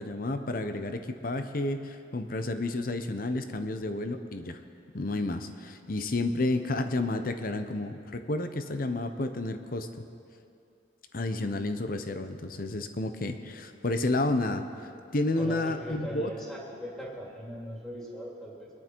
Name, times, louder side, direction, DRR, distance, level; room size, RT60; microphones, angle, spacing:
voice 1, 0.0-4.6 4.9-10.0 11.1-16.3, left 2 dB, 50° left, 8 dB, 0.8 m, -31 dB
voice 2, 15.3-18.7, equal, 5° left, -4 dB, 2.6 m, -39 dB
21.5 x 11.0 x 4.6 m, 2.5 s
head